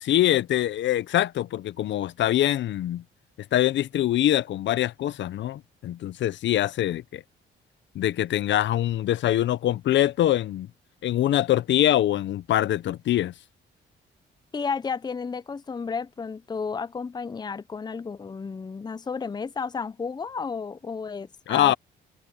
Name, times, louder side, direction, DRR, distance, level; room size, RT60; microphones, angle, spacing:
voice 1, 0.0-3.0 3.5-7.2 7.9-10.7 11.0-13.3 21.5-21.7, left 12 dB, 65° left, 0.6 m, -24 dB
voice 2, 14.5-21.7, left 5 dB, 20° left, 0.6 m, -32 dB
cardioid pair, 90°, 20 cm